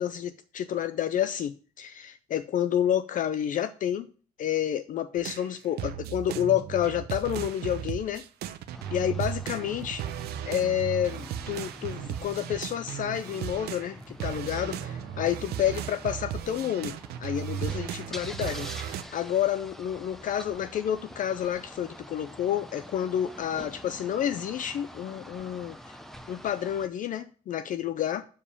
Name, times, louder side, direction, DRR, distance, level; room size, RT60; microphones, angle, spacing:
voice 1, 0.0-4.1 4.4-8.2 8.9-10.0 10.5-26.0 26.3-28.2, left 10 dB, 50° left, 0.5 m, -29 dB
sound 1, 5.2-14.0 14.2-19.0, right 10 dB, 70° right, 0.7 m, -36 dB
sound 2, 8.7-26.9, equal, ahead, 0.8 m, -46 dB
7.1 x 5.0 x 7.0 m
cardioid pair, 110°, 17 cm